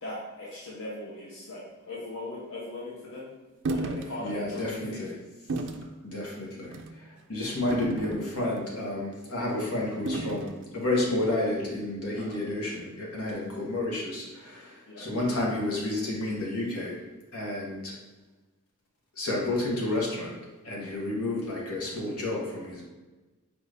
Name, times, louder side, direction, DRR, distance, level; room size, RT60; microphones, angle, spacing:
voice 1, 0.0-3.3 3.7-5.1 12.1-12.4 14.9-15.0, left 1 dB, 60° left, -6 dB, 0.8 m, -39 dB
sound 1, 3.6-4.1 4.6-4.7 5.5-5.9 6.6-6.9 7.7-8.6 10.1-10.6, right 2 dB, 55° right, 0.3 m, -33 dB
voice 2, 4.2-5.1 6.0-6.7 7.0-17.0 17.3-17.9 19.2-20.3 20.6-22.9, left 2 dB, 80° left, -3 dB, 1.1 m, -31 dB
4.8 x 2.6 x 3.3 m, 1.2 s
head